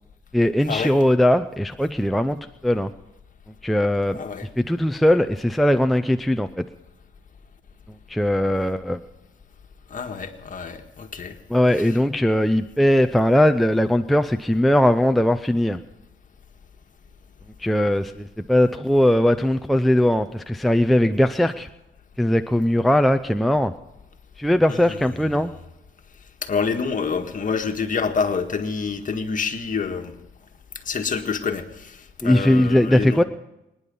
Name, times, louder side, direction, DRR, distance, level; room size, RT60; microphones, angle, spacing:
voice 1, 0.3-2.9 3.6-4.2 4.6-6.6 8.1-9.0 11.5-15.8 17.6-21.7 22.2-23.7 24.4-25.5 32.2-33.2, left 1 dB, ahead, 8 dB, 0.6 m, -19 dB
voice 2, 4.1-4.5 9.9-11.4 11.8-11.9 24.7-25.5 26.4-30.1 30.9-33.2, left 5 dB, 40° left, 5 dB, 1.8 m, -27 dB
24.0 x 10.0 x 5.5 m, 0.92 s
cardioid pair, 90°, 20 cm